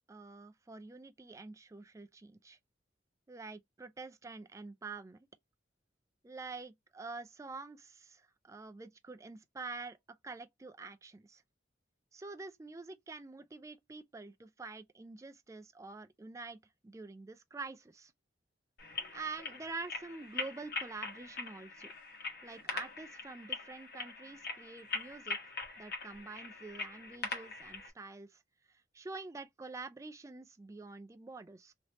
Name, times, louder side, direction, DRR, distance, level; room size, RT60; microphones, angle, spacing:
voice 1, 0.1-2.6 3.3-5.3 6.2-11.4 12.1-18.1 19.1-21.9 22.4-28.4 28.7-31.7, right 3 dB, 15° right, 0.3 m, -47 dB
sound 1, 18.8-27.9, left 4 dB, 60° left, 1.2 m, -42 dB
3.2 x 2.8 x 2.9 m
head